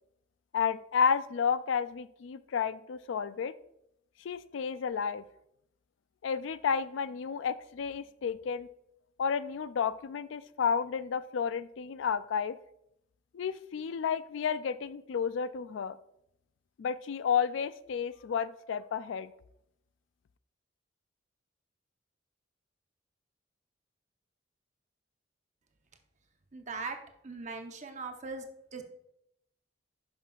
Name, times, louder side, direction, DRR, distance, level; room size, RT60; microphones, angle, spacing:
voice 1, 0.5-3.6 4.2-5.2 6.2-8.7 9.2-12.6 13.3-16.0 16.8-19.3, left 6 dB, 85° left, 15 dB, 0.4 m, -31 dB
voice 2, 26.5-27.0 27.2-28.5 28.7-28.8, right 4 dB, 40° right, 5 dB, 0.8 m, -39 dB
11.0 x 5.6 x 2.4 m, 0.78 s
head